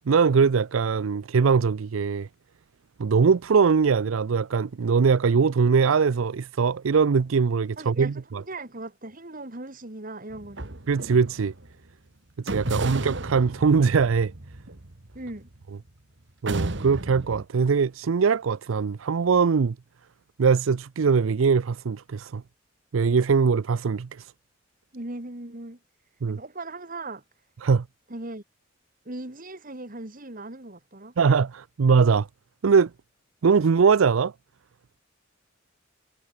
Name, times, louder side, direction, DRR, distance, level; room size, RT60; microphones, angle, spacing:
voice 1, 0.1-2.3 3.0-8.4 10.9-11.5 12.4-14.3 16.4-19.8 20.4-22.4 22.9-24.3 26.2-26.4 27.6-27.8 31.2-32.3 32.6-32.9 33.4-34.3, right 5 dB, 90° right, 0.5 m, -21 dB
voice 2, 7.8-10.7 15.1-15.5 24.9-25.8 26.3-27.2 28.1-28.4 29.0-31.1, right 2 dB, 45° right, 2.7 m, -38 dB
sound 1, 10.3-11.7 12.5-15.9 16.5-17.4, right 2 dB, 65° right, 2.0 m, -33 dB
head